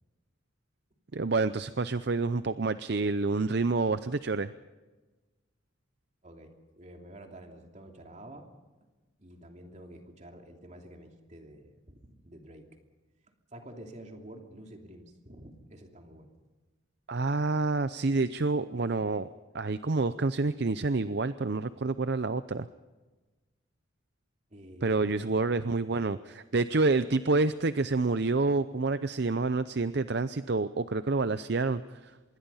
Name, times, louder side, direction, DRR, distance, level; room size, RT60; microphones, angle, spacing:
voice 1, 1.1-4.5 17.1-19.3 19.5-22.7 24.8-32.1, right 3 dB, 55° right, 13 dB, 0.6 m, -28 dB
voice 2, 6.2-8.5 9.2-12.8 13.5-16.3 24.5-25.4, right 1 dB, 35° right, 3 dB, 2.9 m, -49 dB
26.0 x 22.0 x 5.6 m, 1.2 s
head